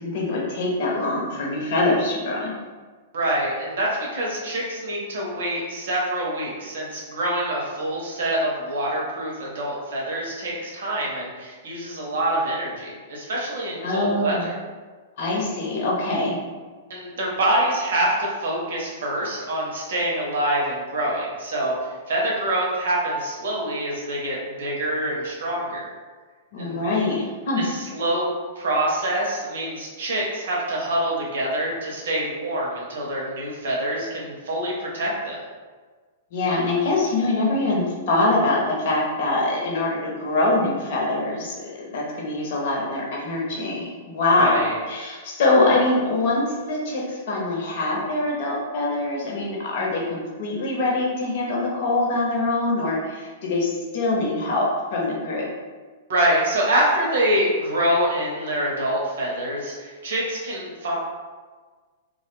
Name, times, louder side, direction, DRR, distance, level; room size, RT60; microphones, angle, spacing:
voice 1, 0.0-2.5 13.8-14.5 15.2-16.4 26.5-27.6 36.3-55.4, left 2 dB, 55° left, -3 dB, 0.8 m, -24 dB
voice 2, 3.1-14.5 16.9-21.7 22.1-25.9 26.6-26.8 27.6-28.3 28.6-35.4 44.4-44.7 56.1-60.9, right 1 dB, 70° right, -3 dB, 0.8 m, -25 dB
2.3 x 2.0 x 3.2 m, 1.4 s
figure-of-eight pair, 105°, 0 cm